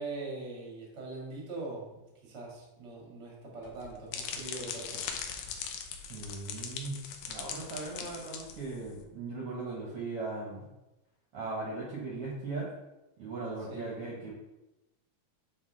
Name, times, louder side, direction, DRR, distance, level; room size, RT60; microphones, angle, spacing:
voice 1, 0.0-5.1 13.7-13.9, right 3 dB, 30° right, -3 dB, 1.6 m, -42 dB
sound 1, 3.6-9.0, left 7 dB, 75° left, 1.8 m, -40 dB
voice 2, 6.1-7.0 7.3-10.6 11.3-12.7 13.2-14.3, right 3 dB, 55° right, -4 dB, 1.7 m, -38 dB
8.2 x 4.3 x 3.3 m, 0.99 s
omnidirectional pair, 3.6 m